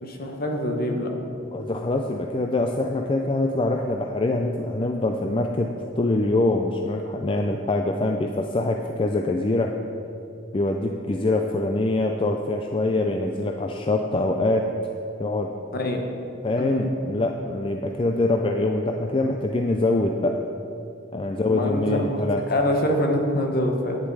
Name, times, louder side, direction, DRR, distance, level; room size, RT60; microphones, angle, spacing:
voice 1, 0.0-1.1 15.7-16.0 16.6-16.9 21.4-24.0, left 1 dB, 50° left, 2 dB, 1.3 m, -25 dB
voice 2, 1.5-9.7 10.5-15.5 16.4-20.4 21.1-22.4, left 2 dB, 25° left, 3 dB, 0.4 m, -24 dB
10.5 x 9.8 x 4.9 m, 2.7 s
head